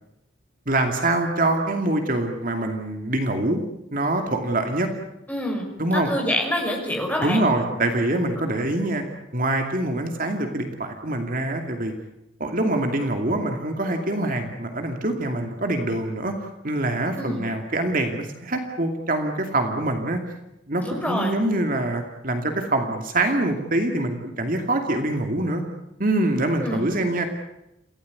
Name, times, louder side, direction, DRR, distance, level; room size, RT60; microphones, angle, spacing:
voice 1, 0.7-3.6 3.9-4.9 5.8-6.1 7.2-9.0 9.3-11.9 12.4-16.4 16.6-20.2 20.7-25.6 26.0-27.2, right 2 dB, 45° right, 4 dB, 2.6 m, -24 dB
voice 2, 5.3-7.4 17.2-17.4 20.8-21.3 26.6-26.8, left 1 dB, 10° left, 1 dB, 5.8 m, -26 dB
28.0 x 16.5 x 9.7 m, 0.88 s
head